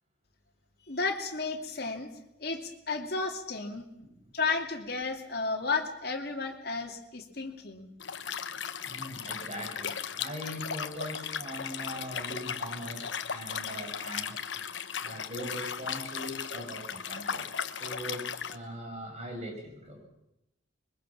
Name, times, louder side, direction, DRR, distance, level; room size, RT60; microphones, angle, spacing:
voice 1, 0.9-2.1 2.4-3.8 4.3-7.9, left 4 dB, 60° left, 2 dB, 2.5 m, -33 dB
voice 2, 4.0-4.3 8.8-14.4 15.0-20.0, equal, 40° right, 2 dB, 6.6 m, -41 dB
Liquid, 8.0-18.6, left 7 dB, 85° left, 1.1 m, -37 dB
22.5 x 21.5 x 7.3 m, 0.88 s
head